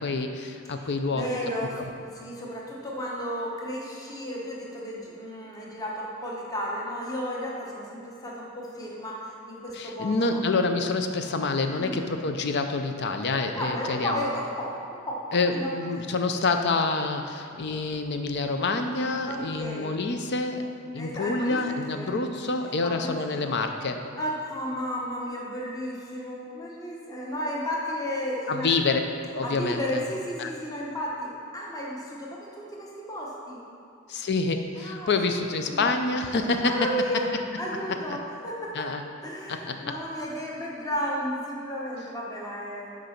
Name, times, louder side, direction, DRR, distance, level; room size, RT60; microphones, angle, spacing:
voice 1, 0.0-1.4 1.8-1.9 9.7-14.2 15.3-20.6 20.9-24.0 28.5-29.0 29.3-30.0 30.4-30.5 34.1-36.9 38.1-38.2 38.7-39.0 39.5-39.7, left 3 dB, 55° left, 6 dB, 0.6 m, -27 dB
voice 2, 0.8-1.8 2.1-10.4 11.8-12.0 13.6-15.2 15.5-15.7 19.2-19.9 21.0-22.3 22.8-23.5 24.2-28.7 29.4-33.6 34.8-35.1 35.5-36.0 36.6-37.3 37.6-38.9 39.2-43.0, equal, 20° left, -4 dB, 1.1 m, -33 dB
6.5 x 5.1 x 5.8 m, 2.6 s
head